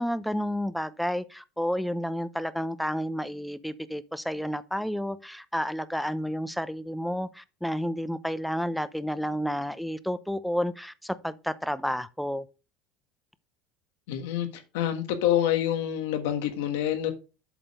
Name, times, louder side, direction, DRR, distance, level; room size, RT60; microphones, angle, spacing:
voice 1, 0.0-12.5, equal, ahead, 0.6 m, -31 dB
voice 2, 14.1-14.5 14.7-17.1, left 11 dB, 85° left, 1.5 m, -26 dB
7.9 x 4.3 x 5.2 m
supercardioid pair, 110°, 0 cm